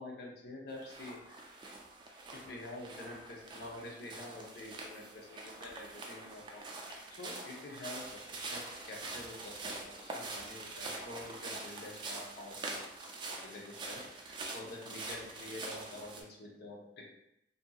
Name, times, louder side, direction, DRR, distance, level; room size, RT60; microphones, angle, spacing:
voice 1, 0.0-1.4 2.3-6.6 7.1-9.7 10.0-12.8 13.3-14.0 14.4-17.1, left 2 dB, 60° left, -3 dB, 0.7 m, -47 dB
sound 1, 0.8-16.2, right 2 dB, 25° right, 0.3 m, -45 dB
2.7 x 2.6 x 2.3 m, 0.83 s
head